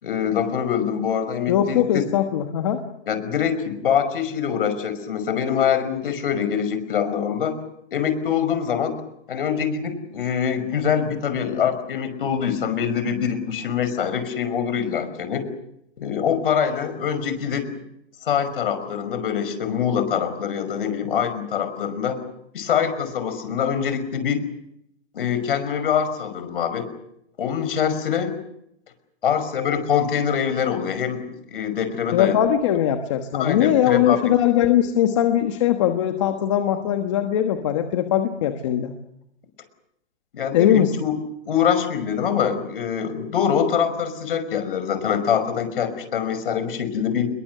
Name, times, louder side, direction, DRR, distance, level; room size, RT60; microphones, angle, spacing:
voice 1, 0.0-2.0 3.1-7.6 7.9-8.9 9.3-15.5 16.0-17.7 18.3-22.2 22.5-24.4 25.1-26.9 27.4-28.3 29.2-32.4 33.4-34.3 40.3-41.2 41.5-47.3, left 8 dB, 55° left, 11 dB, 5.5 m, -24 dB
voice 2, 1.5-2.8 32.1-38.9 40.5-40.9, left 10 dB, 25° left, 6 dB, 1.3 m, -20 dB
27.5 x 22.5 x 6.8 m, 0.77 s
hypercardioid pair, 170°, 33 cm